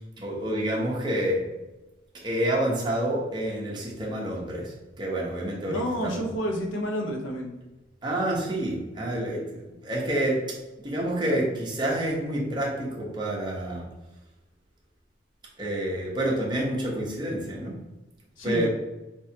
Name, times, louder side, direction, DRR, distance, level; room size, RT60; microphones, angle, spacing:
voice 1, 0.2-1.5 2.1-6.2 8.0-10.6 10.8-13.9 15.6-17.8 18.4-18.7, right 1 dB, 25° right, -3 dB, 0.9 m, -28 dB
voice 2, 5.6-7.6 18.4-18.7, equal, 90° left, 0 dB, 0.9 m, -30 dB
4.3 x 3.5 x 2.8 m, 1.0 s
head